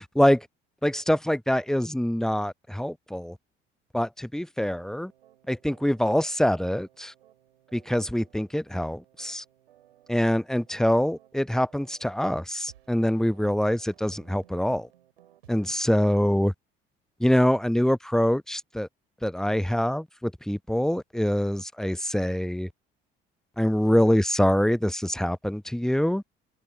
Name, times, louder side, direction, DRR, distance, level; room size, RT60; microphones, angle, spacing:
voice 1, 0.1-0.5 0.8-3.4 3.9-5.1 5.5-7.1 7.7-9.4 10.1-14.9 15.5-16.5 17.2-18.9 19.2-22.7 23.6-26.2, equal, ahead, 0.9 m, -24 dB
sound 1, 4.8-15.7, right 12 dB, 75° right, 5.9 m, -59 dB
open air
figure-of-eight pair, 50°, 30 cm